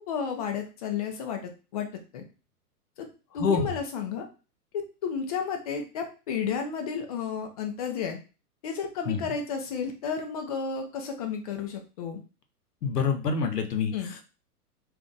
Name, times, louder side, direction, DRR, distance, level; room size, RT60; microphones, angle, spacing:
voice 1, 0.0-1.9 2.1-2.2 3.0-3.1 3.3-4.2 4.7-8.2 8.6-12.2 13.9-14.1, left 6 dB, 25° left, 3 dB, 0.4 m, -32 dB
voice 2, 3.3-3.8 9.0-9.3 12.8-14.2, left 5 dB, 80° left, 5 dB, 0.8 m, -27 dB
2.5 x 2.2 x 3.8 m, 0.32 s
hypercardioid pair, 120°, 47 cm